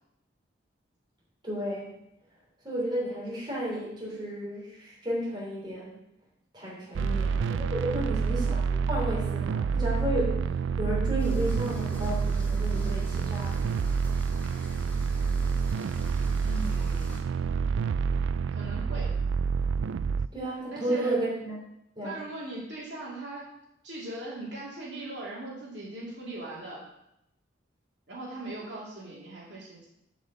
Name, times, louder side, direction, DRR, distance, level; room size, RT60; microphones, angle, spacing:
voice 1, 1.4-2.0 2.6-6.0 6.5-13.5 20.3-21.6 22.0-22.2, right 1 dB, 25° right, -5 dB, 3.1 m, -33 dB
sound 1, 6.9-20.3, right 5 dB, 85° right, 0.3 m, -28 dB
voice 2, 7.0-7.5 8.0-8.4 16.4-17.3 18.5-19.1 20.7-21.2 22.0-23.5 23.8-26.8 28.1-29.9, right 2 dB, 65° right, -5 dB, 2.9 m, -40 dB
sound 2, 11.2-17.2, left 1 dB, 10° left, 2.3 m, -47 dB
7.7 x 5.4 x 7.4 m, 0.82 s
head